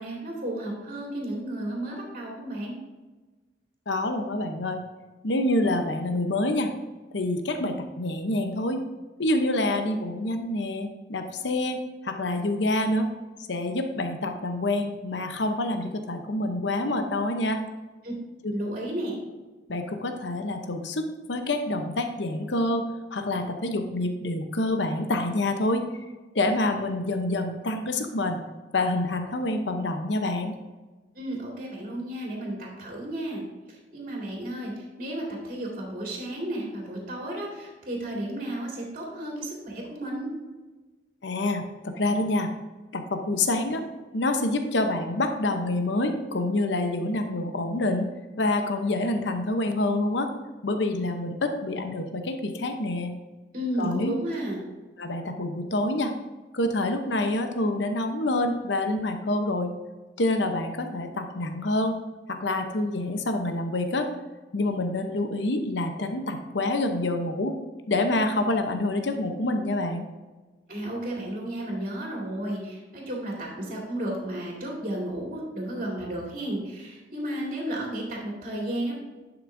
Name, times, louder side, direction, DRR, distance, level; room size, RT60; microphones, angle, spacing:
voice 1, 0.0-2.8 18.0-18.1 18.5-19.2 31.1-33.4 33.7-40.3 53.5-54.6 70.7-78.9, right 1 dB, 50° right, -3 dB, 2.2 m, -33 dB
voice 2, 3.9-4.8 5.2-6.7 7.1-8.8 9.2-11.8 12.0-13.1 13.5-17.6 18.4-18.5 19.7-21.0 21.3-22.8 23.1-25.8 26.3-28.4 28.7-30.5 41.2-41.6 42.0-42.5 42.9-43.9 44.1-48.1 48.4-50.3 50.6-53.1 53.8-54.1 55.0-56.1 56.5-59.7 60.2-61.9 62.3-64.1 64.5-67.5 67.9-70.0, left 2 dB, 70° left, 6 dB, 0.8 m, -27 dB
10.5 x 6.0 x 2.6 m, 1.2 s
head